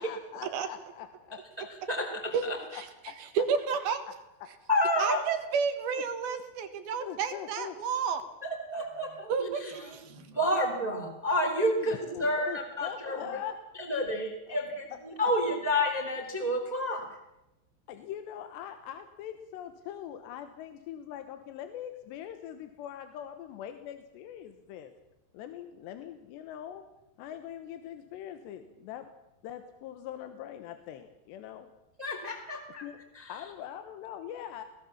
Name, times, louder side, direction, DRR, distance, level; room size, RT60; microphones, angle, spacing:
voice 1, 0.0-1.7 5.0-5.2 7.0-7.8 11.8-13.6 14.5-14.6 17.9-24.9 25.3-26.8 27.2-29.1 29.4-31.7 32.8-33.0 33.3-34.6, left 10 dB, 80° left, 8 dB, 3.2 m, -42 dB
voice 2, 1.6-2.6 4.7-5.2 8.4-13.2 13.9-17.1 32.0-32.9 33.1-33.3, left 1 dB, 10° right, 2 dB, 2.4 m, -30 dB
voice 3, 3.4-4.0 5.0-8.2 9.3-10.3, right 6 dB, 65° right, 8 dB, 3.2 m, -31 dB
23.0 x 17.0 x 7.2 m, 0.93 s
omnidirectional pair, 5.1 m